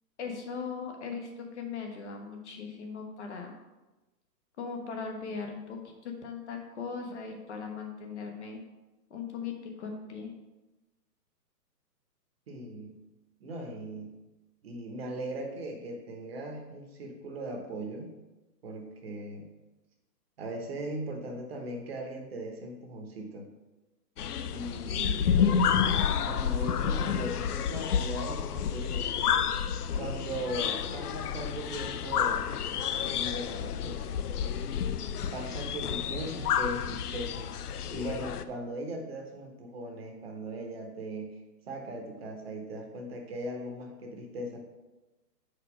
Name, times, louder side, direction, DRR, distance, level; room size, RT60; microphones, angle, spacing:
voice 1, 0.2-3.5 4.6-8.6 9.1-10.3, left 5 dB, 45° left, 3 dB, 1.1 m, -39 dB
voice 2, 12.5-13.0 13.4-14.1 14.6-18.2 18.6-19.5 20.4-23.5 24.5-25.3 26.2-29.1 29.9-32.4 33.0-34.2 35.3-37.5 37.9-41.4 41.7-44.6, right 1 dB, 35° right, 2 dB, 1.0 m, -39 dB
sound 1, 24.2-38.4, left 8 dB, 65° left, 0.5 m, -30 dB
4.9 x 4.6 x 6.0 m, 1.1 s
hypercardioid pair, 150°, 50 cm